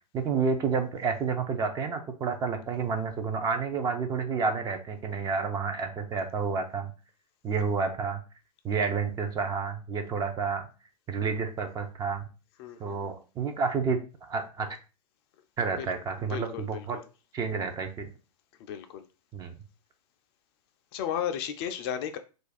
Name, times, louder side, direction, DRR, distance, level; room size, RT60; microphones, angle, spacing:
voice 1, 0.1-6.9 7.4-8.2 8.6-10.7 11.1-12.3 12.8-14.0 14.3-14.7 15.6-17.0 17.3-18.1 19.3-19.5, right 5 dB, 20° right, 0.4 m, -30 dB
voice 2, 12.6-13.1 15.8-15.9 16.3-17.0 18.7-19.0 20.9-22.2, left 9 dB, 40° left, 0.4 m, -34 dB
2.5 x 2.3 x 4.0 m
hypercardioid pair, 105°, 20 cm